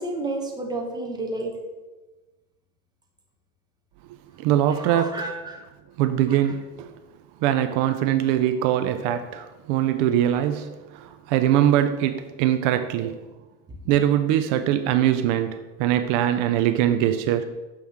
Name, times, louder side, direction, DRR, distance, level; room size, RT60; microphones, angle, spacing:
voice 1, 0.0-1.6 4.7-5.6 6.3-6.4, right 2 dB, 10° right, 1 dB, 1.0 m, -31 dB
voice 2, 4.4-5.3 6.0-6.9 7.4-13.2 13.9-17.5, right 11 dB, 65° right, 9 dB, 0.6 m, -22 dB
5.8 x 3.2 x 5.6 m, 1.2 s
supercardioid pair, 95°, 43 cm